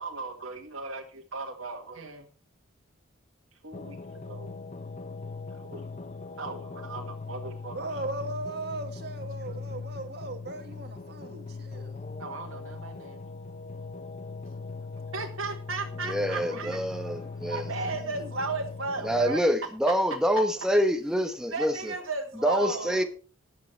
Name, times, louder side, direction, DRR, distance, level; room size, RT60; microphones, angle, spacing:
voice 1, 0.0-2.3 3.6-4.0 4.3-4.5 5.5-5.8 6.4-7.9 12.2-13.2 15.1-17.1 17.4-19.4 21.5-23.0, right 3 dB, 80° right, 1.7 m, -36 dB
sound 1, 3.7-19.4, left 4 dB, 35° left, 0.6 m, -40 dB
voice 2, 7.7-12.0 15.9-16.8 17.7-18.3, right 2 dB, 50° right, 1.9 m, -38 dB
voice 3, 16.0-17.7 19.0-21.7 22.4-23.0, equal, 5° right, 1.1 m, -26 dB
15.5 x 10.5 x 3.3 m
head